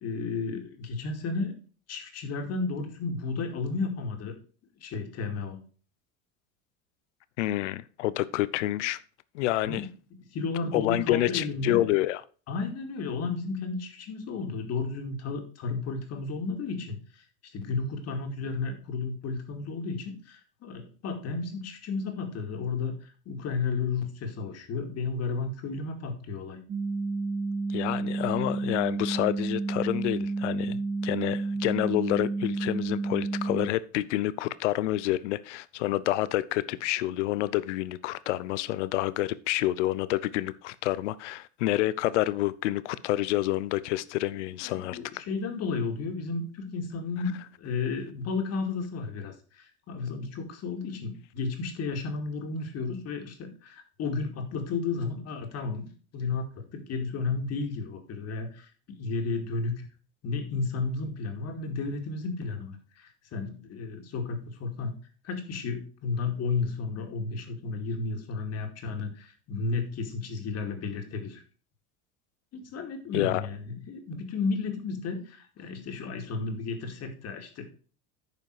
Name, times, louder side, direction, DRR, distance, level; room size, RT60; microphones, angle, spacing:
voice 1, 0.0-1.5 1.9-4.3 4.8-5.6 9.6-9.9 10.3-11.8 12.5-17.2 17.5-26.6 44.6-47.3 47.6-59.9 60.2-64.9 65.2-71.4 72.5-77.6, left 4 dB, 45° left, 2.3 m, -33 dB
voice 2, 7.4-9.0 9.3-9.9 10.7-12.2 27.7-45.0 73.1-73.4, left 15 dB, 90° left, 0.6 m, -28 dB
sound 1, 26.7-33.7, right 3 dB, 30° right, 1.0 m, -30 dB
9.4 x 5.3 x 4.7 m
supercardioid pair, 105°, 35 cm